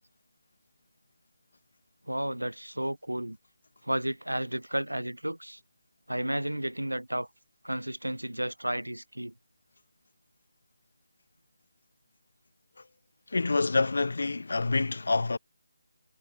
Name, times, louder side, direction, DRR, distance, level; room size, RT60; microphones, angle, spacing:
voice 1, 2.1-3.4 3.8-5.6 6.1-7.3 7.6-9.3, right 1 dB, 85° right, 0.5 m, -32 dB
voice 2, 13.3-15.4, left 3 dB, 60° left, 0.4 m, -27 dB
figure-of-eight pair, 155°, 0 cm